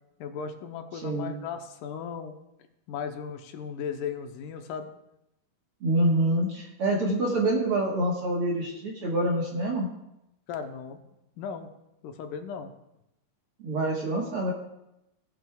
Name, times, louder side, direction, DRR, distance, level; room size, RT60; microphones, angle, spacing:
voice 1, 0.2-2.4 2.9-4.9 10.5-11.0 11.4-11.7 12.0-12.7, left 6 dB, 80° left, 6 dB, 2.4 m, -36 dB
voice 2, 5.8-9.9 13.6-14.5, right 1 dB, 55° right, -1 dB, 1.9 m, -26 dB
18.5 x 7.6 x 2.3 m, 0.87 s
omnidirectional pair, 3.7 m